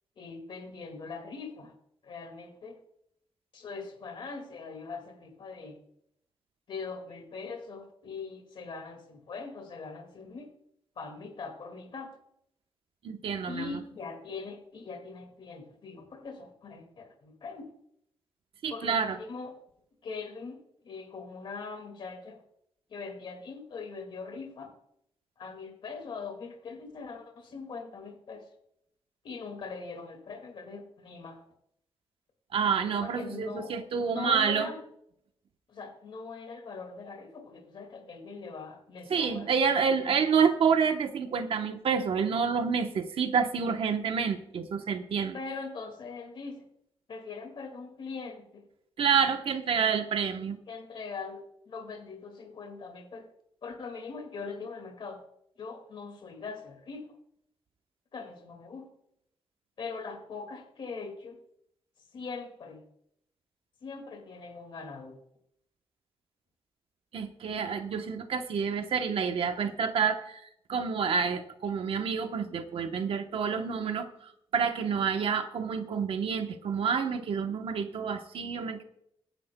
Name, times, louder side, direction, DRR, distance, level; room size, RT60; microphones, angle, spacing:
voice 1, 0.2-1.7 2.0-2.8 3.5-5.8 6.7-10.5 11.0-12.2 13.5-17.7 18.7-19.6 20.0-20.6 20.8-22.4 22.9-24.7 25.4-28.5 29.2-31.4 33.0-34.8 35.7-39.5 45.3-46.7 47.1-48.6 50.7-53.3 53.6-55.2 55.6-57.0 58.1-58.9 59.8-61.4 62.1-62.8 63.8-65.2, left 4 dB, 55° left, 4 dB, 2.0 m, -41 dB
voice 2, 13.0-13.8 18.6-19.2 32.5-34.7 39.1-45.4 49.0-50.6 67.1-74.1 74.5-78.8, right 6 dB, 70° right, 6 dB, 1.0 m, -28 dB
23.0 x 9.6 x 2.2 m, 0.73 s
wide cardioid pair, 180°, 10 cm